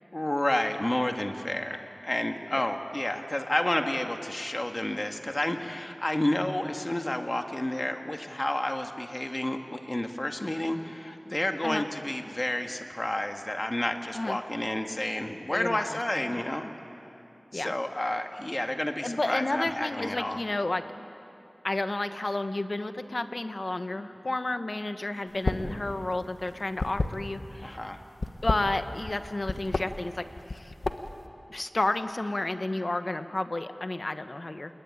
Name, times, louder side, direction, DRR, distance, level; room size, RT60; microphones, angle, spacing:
voice 1, 0.1-16.7 17.5-20.4 27.6-28.0, left 1 dB, 35° left, 5 dB, 1.9 m, -30 dB
voice 2, 15.5-16.4 17.5-17.7 19.0-20.9 21.6-27.8 28.4-30.3 30.5-30.7 31.5-34.7, left 2 dB, 55° left, 9 dB, 1.3 m, -31 dB
sound 1, 25.3-25.8 26.0-27.6 28.1-29.2 29.5-29.9 30.4-31.2, left 3 dB, 80° left, 1.3 m, -30 dB
27.5 x 21.5 x 9.7 m, 2.8 s
wide cardioid pair, 45°, 0 cm